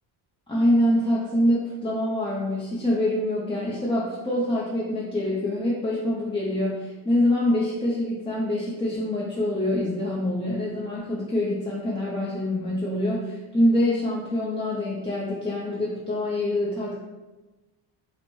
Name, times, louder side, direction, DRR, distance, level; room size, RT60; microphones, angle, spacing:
voice 1, 0.5-16.9, left 1 dB, 10° left, -7 dB, 0.6 m, -25 dB
5.4 x 2.1 x 3.1 m, 1.2 s
cardioid pair, 110°, 47 cm